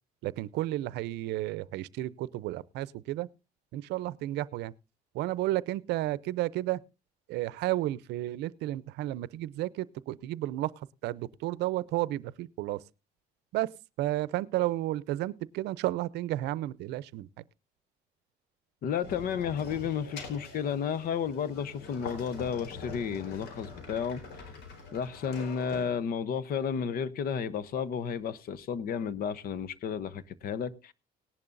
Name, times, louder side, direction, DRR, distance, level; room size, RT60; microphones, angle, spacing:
voice 1, 0.2-3.3 3.7-4.7 5.1-6.8 7.3-12.8 13.5-13.7 14.0-17.3, right 16 dB, 85° right, 0.6 m, -32 dB
voice 2, 18.8-24.2 24.9-30.9, left 7 dB, 60° left, 0.9 m, -32 dB
sound 1, 19.0-25.9, left 4 dB, 85° left, 4.2 m, -44 dB
18.5 x 11.0 x 2.6 m
cardioid pair, 110°, 17 cm